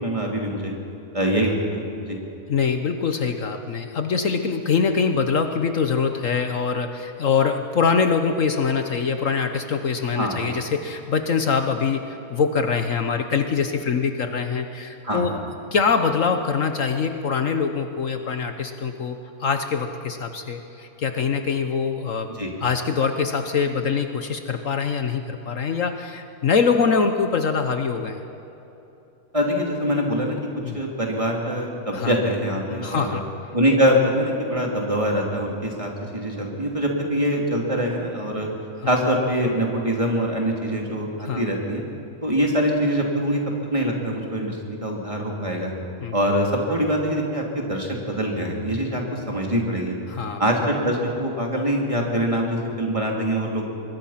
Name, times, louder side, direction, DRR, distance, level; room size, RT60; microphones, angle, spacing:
voice 1, 0.0-0.7 1.1-2.2 10.1-10.4 15.0-15.2 22.3-22.5 29.3-30.4 30.7-33.2 33.5-38.5 38.9-41.8 42.2-45.7 46.1-50.0 50.4-53.6, equal, 20° right, 0 dB, 3.0 m, -24 dB
voice 2, 2.5-15.4 15.7-22.3 22.6-28.2 30.6-30.8 31.9-32.1 32.7-33.5 38.8-38.9 41.2-41.4 46.0-46.2 50.1-50.4, left 5 dB, 60° left, 7 dB, 1.4 m, -24 dB
24.5 x 21.0 x 5.8 m, 3.0 s
omnidirectional pair, 1.6 m